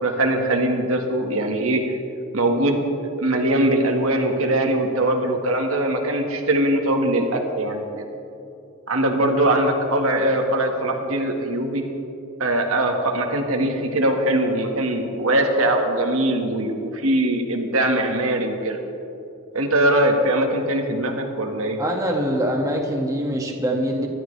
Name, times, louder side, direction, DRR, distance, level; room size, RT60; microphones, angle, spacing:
voice 1, 0.0-2.0 2.3-8.1 8.9-11.8 12.4-18.8 19.5-21.8, right 1 dB, 85° right, 2 dB, 1.8 m, -21 dB
voice 2, 21.8-24.1, equal, 15° right, 0 dB, 1.8 m, -24 dB
24.5 x 12.0 x 3.4 m, 2.8 s
head